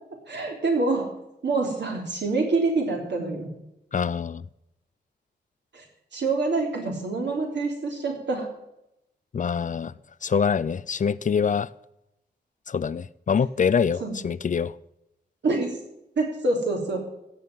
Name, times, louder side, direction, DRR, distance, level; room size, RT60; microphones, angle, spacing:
voice 1, 0.3-1.1 1.4-3.5 5.7-5.8 6.1-8.5 14.0-14.1 15.4-15.7 16.2-17.0, right 3 dB, 90° right, 1 dB, 3.6 m, -26 dB
voice 2, 3.9-4.4 9.3-9.9 10.2-11.7 12.7-14.7, left 6 dB, 45° left, 18 dB, 0.4 m, -25 dB
16.0 x 6.7 x 7.5 m, 0.85 s
wide cardioid pair, 135°, 18 cm